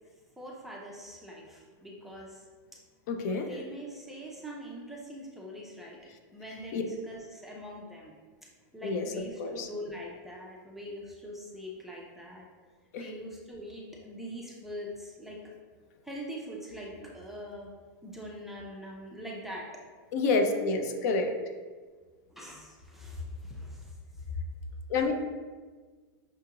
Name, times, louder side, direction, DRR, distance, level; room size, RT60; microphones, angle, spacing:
voice 1, 0.4-2.4 3.3-6.0 6.3-8.1 8.7-12.5 13.0-15.4 16.0-17.7 18.0-19.8 22.3-24.2, equal, ahead, -3 dB, 0.4 m, -43 dB
voice 2, 3.1-3.5 6.7-6.8 8.8-9.1 9.4-9.7 12.9-13.1 20.1-21.3 24.9-25.1, left 3 dB, 55° left, 5 dB, 0.5 m, -28 dB
5.6 x 2.3 x 2.9 m, 1.4 s
supercardioid pair, 160°, 11 cm